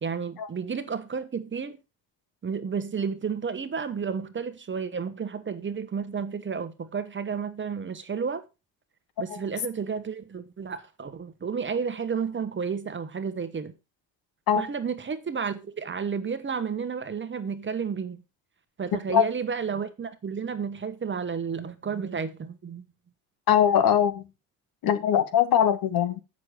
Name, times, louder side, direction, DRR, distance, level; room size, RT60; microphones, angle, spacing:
voice 1, 0.0-1.8 2.4-8.4 9.2-13.7 14.6-18.2 18.8-22.8, right 6 dB, 30° right, 1.1 m, -31 dB
voice 2, 23.5-24.2 24.8-26.2, left 9 dB, 60° left, 1.3 m, -22 dB
7.5 x 6.3 x 4.8 m
supercardioid pair, 75°, 41 cm